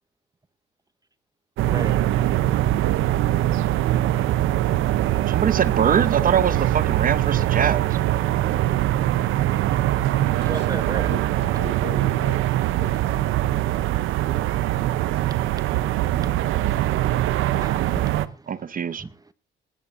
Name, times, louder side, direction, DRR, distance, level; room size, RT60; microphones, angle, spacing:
voice 1, 1.6-2.0 9.7-9.8 10.3-11.1 14.2-19.3, right 3 dB, 20° right, 0.9 m, -38 dB
sound 1, 1.6-18.3, right 14 dB, 90° right, 0.8 m, -22 dB
voice 2, 5.3-7.8 18.5-19.0, right 7 dB, 45° right, 0.9 m, -23 dB
voice 3, 10.2-10.7 11.1-13.7, left 6 dB, 60° left, 4.8 m, -40 dB
19.0 x 14.0 x 2.6 m
cardioid pair, 90°, 20 cm